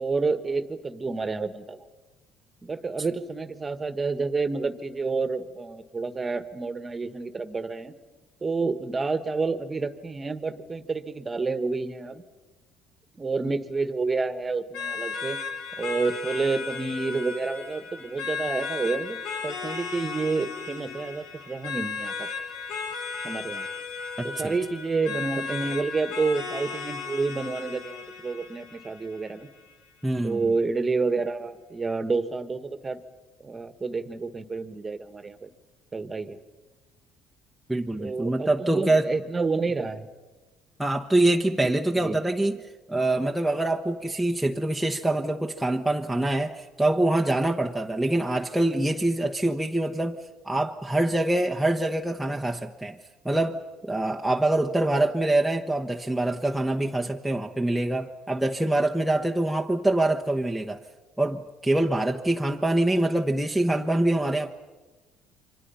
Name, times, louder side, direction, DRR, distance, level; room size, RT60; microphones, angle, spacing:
voice 1, 0.0-1.8 2.6-7.9 8.4-12.2 13.2-15.4 15.8-19.2 19.4-22.3 23.2-23.7 24.2-29.5 30.2-33.0 33.4-35.5 35.9-36.4 38.0-40.1 42.0-42.2, right 4 dB, 25° right, 12 dB, 1.4 m, -29 dB
sound 1, 14.7-29.7, left 5 dB, 80° left, 2.9 m, -35 dB
voice 2, 24.2-24.5 30.0-30.5 37.7-39.1 40.8-42.6 42.9-50.2 50.4-53.0 53.2-60.8 61.2-64.5, right 1 dB, ahead, 1 dB, 1.0 m, -25 dB
29.0 x 24.5 x 5.7 m, 1.2 s
cardioid pair, 105°, 0 cm